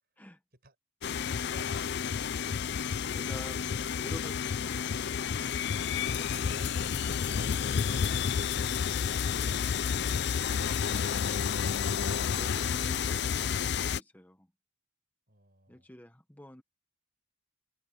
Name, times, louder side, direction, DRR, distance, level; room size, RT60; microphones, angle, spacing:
sound 1, 1.0-14.0, left 7 dB, 55° left, 0.4 m, -30 dB
voice 1, 1.4-2.4 15.3-15.9, right 2 dB, 50° right, 5.6 m, -59 dB
voice 2, 2.7-3.7 4.0-5.3 12.4-14.5 15.7-16.6, equal, 10° left, 1.3 m, -50 dB
head